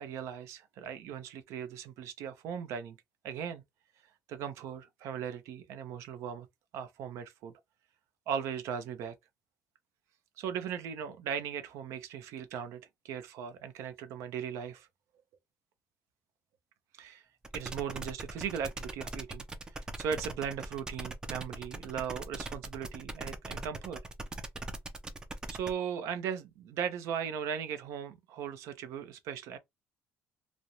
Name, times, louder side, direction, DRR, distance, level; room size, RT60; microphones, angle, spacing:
voice 1, 0.0-3.0 3.2-3.6 4.3-6.5 6.7-7.5 8.3-9.2 10.4-14.9 17.0-17.2 17.5-19.4 19.7-24.0 25.5-29.6, right 8 dB, 75° right, 0.6 m, -38 dB
sound 1, 17.4-25.7, right 2 dB, 15° right, 0.4 m, -41 dB
2.5 x 2.1 x 2.9 m
cardioid pair, 155°, 5 cm